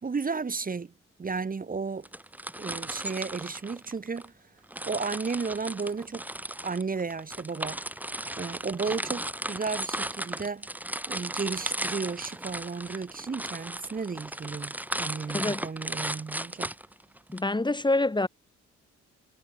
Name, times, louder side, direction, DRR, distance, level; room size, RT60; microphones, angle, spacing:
voice 1, 0.0-0.9 1.2-2.1 2.6-4.3 4.9-6.2 6.6-7.8 8.4-10.7 11.1-16.7, right 4 dB, 30° right, 1.8 m, -33 dB
sound 1, 2.0-4.3 4.7-17.4, right 1 dB, 5° right, 1.1 m, -36 dB
voice 2, 15.3-15.6 17.3-18.3, left 2 dB, 15° left, 1.9 m, -26 dB
cardioid pair, 90°, 30 cm